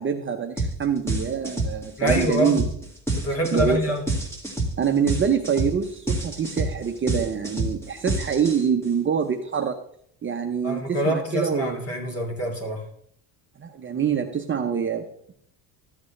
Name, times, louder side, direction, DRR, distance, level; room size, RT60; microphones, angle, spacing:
voice 1, 0.0-2.6 3.5-3.8 4.8-9.8 10.2-11.8 13.6-15.3, right 7 dB, 25° right, 3 dB, 0.8 m, -25 dB
sound 1, 0.6-0.8 1.1-8.9, right 2 dB, 5° left, 2.3 m, -27 dB
voice 2, 2.0-2.7 3.2-4.1 10.6-12.8, equal, 30° left, 2 dB, 2.9 m, -26 dB
14.0 x 8.0 x 3.3 m, 0.66 s
cardioid pair, 115°, 48 cm